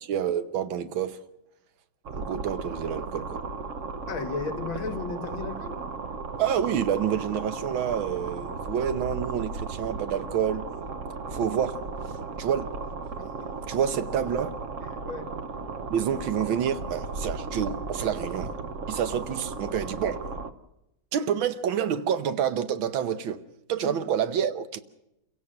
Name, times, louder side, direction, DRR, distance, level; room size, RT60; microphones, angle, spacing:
voice 1, 0.1-1.2 2.2-3.4 6.4-10.7 11.3-11.8 12.4-12.7 13.7-14.6 15.9-18.6 18.9-20.3 21.1-23.4 23.7-24.8, right 8 dB, 75° right, 1.7 m, -28 dB
sound 1, 2.0-20.5, right 4 dB, 50° right, 1.0 m, -35 dB
voice 2, 4.1-5.8 13.2-13.5 15.0-15.3 23.8-24.0, left 5 dB, 70° left, 2.3 m, -34 dB
28.0 x 16.5 x 6.5 m
omnidirectional pair, 2.3 m